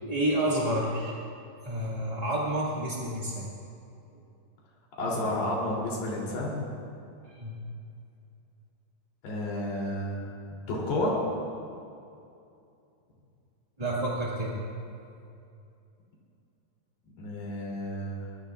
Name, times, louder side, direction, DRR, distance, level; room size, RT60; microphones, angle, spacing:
voice 1, 0.0-1.2 1.6-3.5 7.2-7.6 13.8-14.6, right 1 dB, 30° right, -6 dB, 0.7 m, -29 dB
voice 2, 5.0-6.7 9.2-10.3 10.7-11.2 17.2-18.3, left 1 dB, 85° left, -4 dB, 5.3 m, -31 dB
23.5 x 19.0 x 2.5 m, 2.6 s
omnidirectional pair, 4.5 m